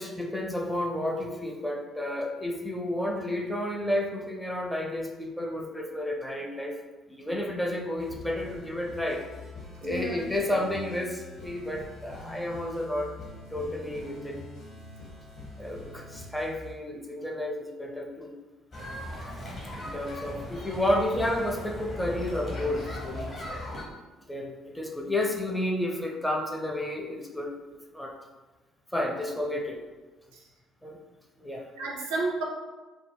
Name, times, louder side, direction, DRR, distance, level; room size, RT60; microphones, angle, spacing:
voice 1, 0.0-6.8 7.2-9.2 9.8-13.1 13.5-14.4 15.6-18.3 19.4-19.5 19.8-23.5 24.3-27.5 27.9-28.1 28.9-29.8 30.8-31.0 31.4-31.7, left 1 dB, 5° left, 0 dB, 0.5 m, -31 dB
sound 1, 7.9-16.7, left 2 dB, 75° left, 1.1 m, -44 dB
voice 2, 9.8-10.3 11.6-11.7 30.3-30.4 31.8-32.4, right 2 dB, 75° right, -3 dB, 0.5 m, -32 dB
sound 2, 18.7-23.8, left 1 dB, 45° left, 0.8 m, -38 dB
2.2 x 2.0 x 3.3 m, 1.2 s
figure-of-eight pair, 50°, 0 cm